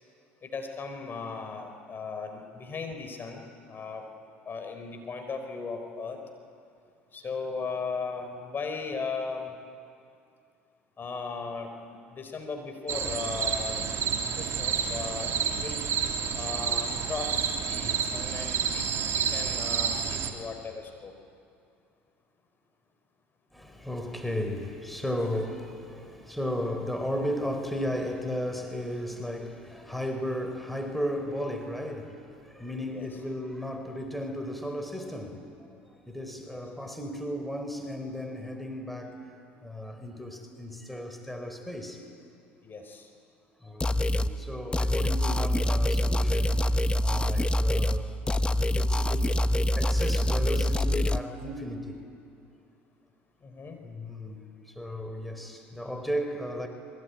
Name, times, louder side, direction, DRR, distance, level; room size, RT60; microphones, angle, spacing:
voice 1, 0.4-4.0 4.5-6.2 7.1-9.5 11.0-13.8 14.4-15.9 16.3-18.8 19.1-21.1 32.9-33.1 36.5-36.6 42.6-43.1 53.4-53.8, left 4 dB, 35° left, 5 dB, 4.7 m, -37 dB
sound 1, 12.9-20.3, right 7 dB, 50° right, 3.1 m, -29 dB
voice 2, 23.5-39.3 39.6-42.0 43.6-52.0 53.8-56.7, equal, ahead, 5 dB, 4.1 m, -35 dB
sound 2, 43.8-44.3 44.7-48.0 48.3-51.2, left 1 dB, 15° left, 1.0 m, -25 dB
26.0 x 23.0 x 9.7 m, 2.4 s
hypercardioid pair, 70°, 6 cm